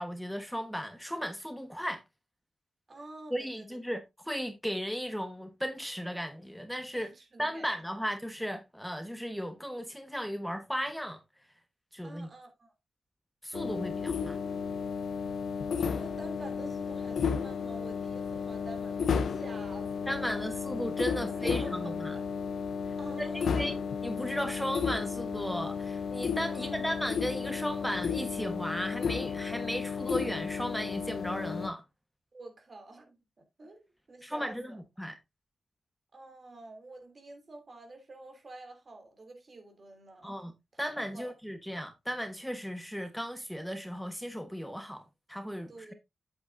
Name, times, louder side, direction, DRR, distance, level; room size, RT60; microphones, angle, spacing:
voice 1, 0.0-2.0 3.3-4.0 4.3-7.1 7.4-11.2 11.9-12.3 13.4-14.4 20.1-22.1 23.2-31.8 34.2-35.1 40.2-40.5 40.8-45.9, equal, ahead, 1.2 m, -36 dB
voice 2, 2.9-3.8 6.9-7.7 12.0-12.7 15.6-20.4 20.7-22.2 23.0-23.7 26.5-26.9 32.3-33.2 33.6-33.8 34.1-34.8 36.1-40.4 40.7-40.8 41.1-41.3 45.7-45.9, right 2 dB, 50° right, 3.0 m, -48 dB
sound 1, 13.5-31.7, left 6 dB, 85° left, 0.7 m, -33 dB
8.5 x 8.0 x 2.6 m
cardioid pair, 60°, 0 cm